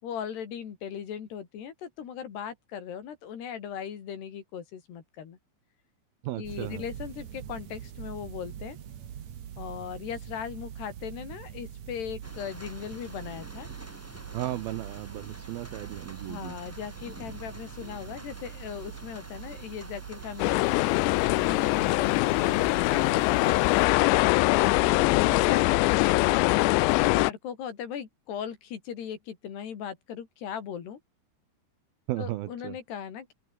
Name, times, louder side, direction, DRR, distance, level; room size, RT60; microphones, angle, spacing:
voice 1, 0.0-5.4 6.4-8.8 9.6-13.7 16.2-20.8 21.4-26.1 26.9-31.0 32.2-33.3, left 8 dB, 65° left, 5.0 m, -38 dB
voice 2, 6.2-6.8 14.3-16.6 32.1-32.8, right 15 dB, 75° right, 2.3 m, -35 dB
sound 1, 6.4-23.9, right 9 dB, 55° right, 2.3 m, -43 dB
sound 2, 12.2-24.7, equal, 5° right, 5.2 m, -48 dB
sound 3, 20.4-27.3, left 24 dB, 85° left, 2.7 m, -23 dB
open air
omnidirectional pair, 5.2 m